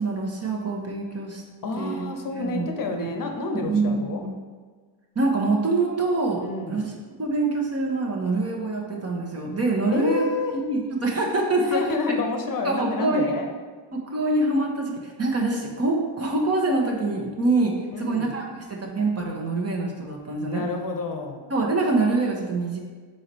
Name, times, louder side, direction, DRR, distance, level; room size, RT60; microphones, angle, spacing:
voice 1, 0.0-1.4 1.7-2.0 2.3-2.7 3.0-3.1 3.6-4.3 5.1-6.9 7.2-10.3 10.5-11.8 12.6-13.3 13.9-20.6 21.5-22.8, right 3 dB, 35° right, -1 dB, 1.3 m, -25 dB
voice 2, 1.6-4.2 6.4-6.9 9.9-10.5 11.6-13.5 17.9-18.3 20.5-21.5, left 3 dB, 50° left, 4 dB, 0.8 m, -29 dB
4.7 x 4.3 x 4.6 m, 1.5 s
cardioid pair, 85°, 44 cm